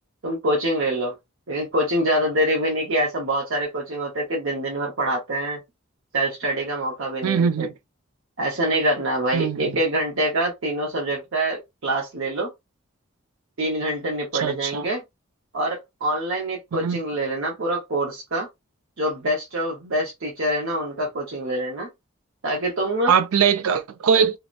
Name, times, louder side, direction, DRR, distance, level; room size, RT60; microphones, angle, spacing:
voice 1, 0.2-1.1 1.5-5.6 6.1-7.7 8.4-12.5 13.6-15.0 15.5-18.5 19.0-21.9 22.4-23.1, right 1 dB, 70° right, 0.8 m, -25 dB
voice 2, 7.2-7.7 9.3-9.8 14.4-14.9 16.7-17.0 23.1-24.4, right 7 dB, 90° right, 0.4 m, -21 dB
2.8 x 2.0 x 2.4 m
head